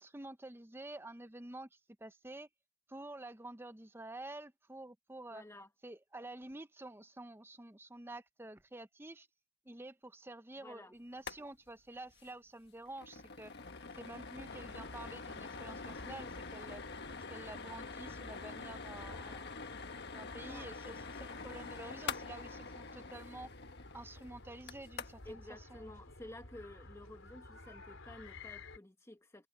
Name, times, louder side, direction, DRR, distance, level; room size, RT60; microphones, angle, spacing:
voice 1, 0.0-2.5 2.9-5.4 5.8-9.3 9.6-13.5 13.9-16.8 17.3-19.5 20.1-23.5 23.9-25.4 25.7-25.9, right 2 dB, 10° right, 0.7 m, -49 dB
voice 2, 5.3-5.7 10.6-10.9 19.1-19.5 20.5-20.7 25.2-29.5, left 1 dB, 15° left, 1.6 m, -52 dB
sound 1, 11.1-11.4 11.7-11.8 12.1-12.3 12.7-25.3, left 4 dB, 55° left, 1.5 m, -46 dB
sound 2, 14.5-28.8, left 2 dB, 75° left, 3.7 m, -53 dB
head